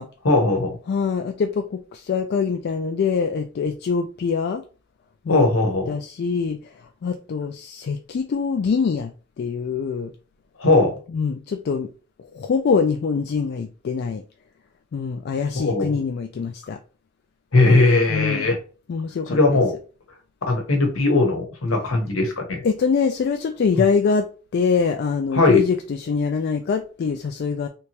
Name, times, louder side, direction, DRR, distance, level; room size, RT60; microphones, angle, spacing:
voice 1, 0.2-0.8 5.3-5.9 10.6-10.9 15.5-15.9 17.5-18.6 19.3-19.7 20.5-22.6 25.3-25.6, left 2 dB, 70° left, 3 dB, 1.0 m, -19 dB
voice 2, 0.9-4.6 5.3-5.5 5.9-6.7 7.0-9.1 9.4-10.1 11.1-11.9 12.3-14.2 14.9-16.8 18.1-18.5 18.9-19.6 22.6-24.3 24.5-27.7, left 5 dB, 50° left, 6 dB, 0.3 m, -24 dB
3.3 x 2.9 x 2.9 m, 0.37 s
head